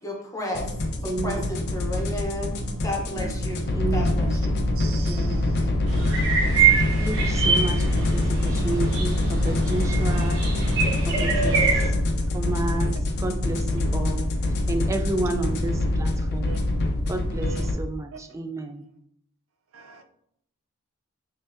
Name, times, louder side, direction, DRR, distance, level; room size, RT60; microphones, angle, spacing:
voice 1, 0.0-2.5 2.8-3.6 3.9-4.5, left 1 dB, 15° left, 0 dB, 0.8 m, -32 dB
sound 1, 0.5-17.7, left 1 dB, 50° left, 0.5 m, -25 dB
voice 2, 1.1-1.4 3.7-4.1 5.1-5.6 5.9-6.4 7.0-7.8 8.1-8.2 8.5-10.4 11.1-11.2 11.4-11.6 12.3-12.9 13.2-14.3 14.7-16.6 17.1-18.8, right 2 dB, 15° right, 6 dB, 0.3 m, -31 dB
voice 3, 4.8-5.7 6.2-6.5 6.8-7.6 11.5-11.7 12.7-12.9 16.5-16.6 17.3-17.7 18.1-18.2 19.7-20.0, right 5 dB, 80° right, 6 dB, 0.5 m, -41 dB
sound 2, 5.9-11.9, right 5 dB, 65° right, 1.1 m, -25 dB
5.5 x 2.6 x 2.5 m, 0.73 s
head